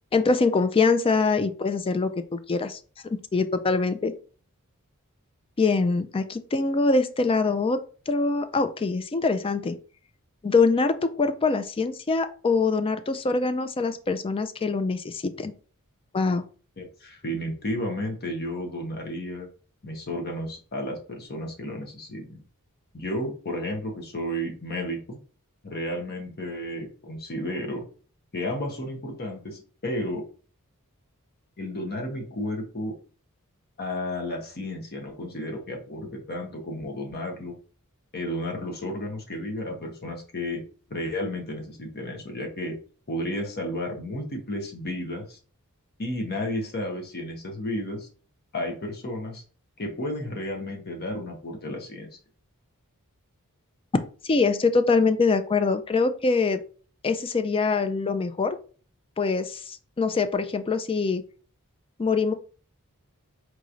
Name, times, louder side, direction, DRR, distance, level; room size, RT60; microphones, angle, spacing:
voice 1, 0.1-4.1 5.6-7.8 8.1-9.8 10.4-15.5 16.1-16.4 54.2-56.6 57.0-58.6 59.2-61.2 62.0-62.3, left 4 dB, 25° left, 10 dB, 0.4 m, -24 dB
voice 2, 16.8-19.5 19.8-22.4 22.9-25.2 25.6-27.8 28.3-30.2 31.6-33.0 33.8-37.5 38.1-40.6 40.9-42.8 43.1-45.4 46.0-48.1 48.5-49.4 49.8-52.1, left 1 dB, 45° left, 2 dB, 1.0 m, -32 dB
4.6 x 3.1 x 2.6 m, 0.39 s
head